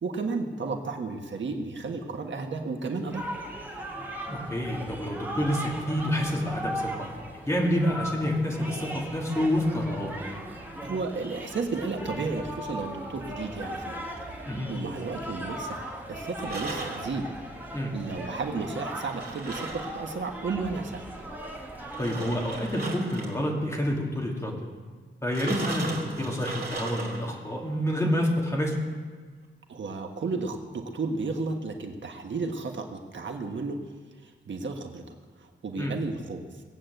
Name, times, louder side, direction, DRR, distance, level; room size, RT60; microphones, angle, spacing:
voice 1, 0.0-3.3 10.8-14.1 14.4-17.3 17.9-21.0 25.5-25.6 29.7-33.8 34.2-35.0 35.4-36.5, right 4 dB, 65° right, 3 dB, 1.4 m, -33 dB
sound 1, 3.0-22.5, equal, 10° right, 2.4 m, -38 dB
voice 2, 4.3-7.1 7.5-10.1 14.5-14.7 17.7-17.9 22.0-24.6 25.2-28.8 35.8-35.9, equal, 15° left, -2 dB, 2.7 m, -28 dB
sound 2, 13.4-14.8 16.3-17.1 19.0-20.2 21.8-23.4 25.3-27.4, right 3 dB, 45° right, 3.1 m, -37 dB
20.0 x 8.6 x 7.8 m, 1.5 s
wide cardioid pair, 155°, 21 cm